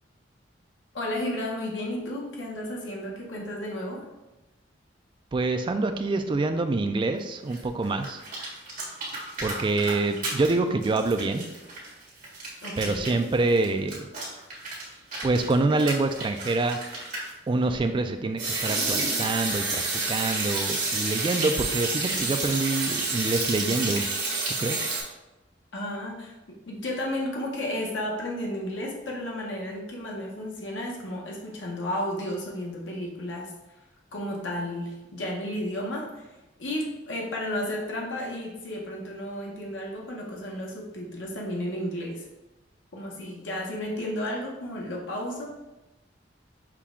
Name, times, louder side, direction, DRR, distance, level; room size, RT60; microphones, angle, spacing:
voice 1, 0.9-4.1 12.6-13.2 25.7-33.5 34.1-42.2 42.9-45.5, left 1 dB, 70° left, -1 dB, 0.9 m, -33 dB
voice 2, 5.3-8.2 9.4-11.5 12.8-14.1 15.2-16.8 17.5-19.8 20.1-24.1 24.6-24.8, right 3 dB, 25° right, 7 dB, 0.3 m, -26 dB
sound 1, 7.5-7.6 7.8-10.5 10.8-17.3 18.4-25.0, right 3 dB, 45° right, 1.5 m, -30 dB
5.9 x 2.3 x 3.6 m, 1.0 s
head